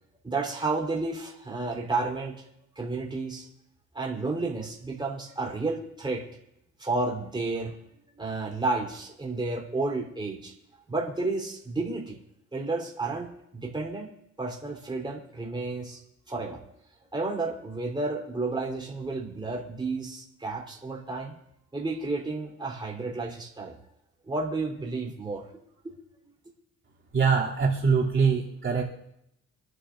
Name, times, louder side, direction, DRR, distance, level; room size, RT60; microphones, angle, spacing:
voice 1, 0.2-2.3 2.7-3.5 3.9-6.2 6.8-7.7 8.2-10.5 10.9-12.2 12.5-14.1 14.4-16.0 16.3-16.6 17.1-21.4 21.7-23.7 24.3-25.5 25.8-26.0, right 3 dB, 15° right, -1 dB, 3.4 m, -31 dB
voice 2, 27.1-28.8, right 5 dB, 40° right, -4 dB, 2.8 m, -23 dB
26.0 x 11.5 x 2.5 m, 0.81 s
cardioid pair, 90°, 30 cm